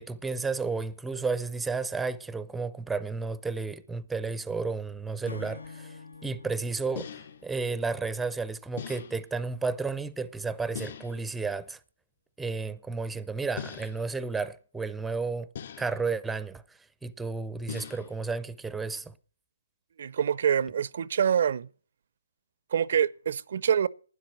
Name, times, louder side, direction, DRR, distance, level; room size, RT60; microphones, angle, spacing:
voice 1, 0.0-11.8 12.4-15.5 15.8-19.1, right 4 dB, 5° right, 0.5 m, -32 dB
sound 1, 5.1-5.2 7.0-7.5 8.8-9.4 10.8-11.3 13.6-14.2 15.6-16.1 17.7-18.3, left 8 dB, 50° left, 2.3 m, -41 dB
Acoustic guitar / Strum, 5.3-8.7, left 4 dB, 80° left, 1.2 m, -47 dB
voice 2, 20.0-21.7 22.7-23.9, right 8 dB, 50° right, 0.5 m, -25 dB
12.0 x 10.0 x 6.2 m
hypercardioid pair, 150°, 0 cm